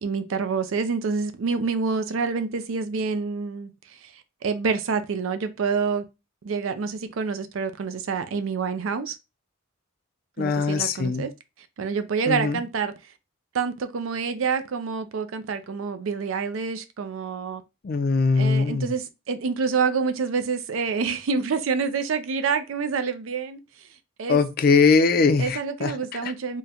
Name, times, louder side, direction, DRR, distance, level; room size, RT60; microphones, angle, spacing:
voice 1, 0.0-3.7 4.0-4.1 4.4-6.0 6.4-9.2 10.4-11.3 11.8-12.9 13.5-17.6 18.4-23.6 24.2-24.4 25.4-26.6, right 5 dB, 70° right, 0.4 m, -27 dB
voice 2, 10.4-11.3 12.3-12.6 17.8-18.9 24.3-25.9 26.2-26.3, left 4 dB, 45° left, 0.4 m, -21 dB
3.6 x 2.1 x 2.7 m
head